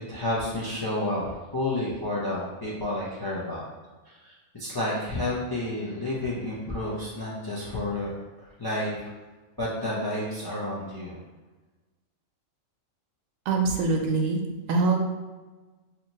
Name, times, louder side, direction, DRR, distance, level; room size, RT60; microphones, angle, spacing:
voice 1, 0.1-3.6 4.0-8.1 8.6-9.1 9.6-11.1, left 1 dB, 30° left, -7 dB, 0.4 m, -30 dB
voice 2, 13.5-14.4 14.7-15.0, right 3 dB, 85° right, 2 dB, 1.0 m, -23 dB
3.0 x 2.4 x 4.0 m, 1.2 s
omnidirectional pair, 1.4 m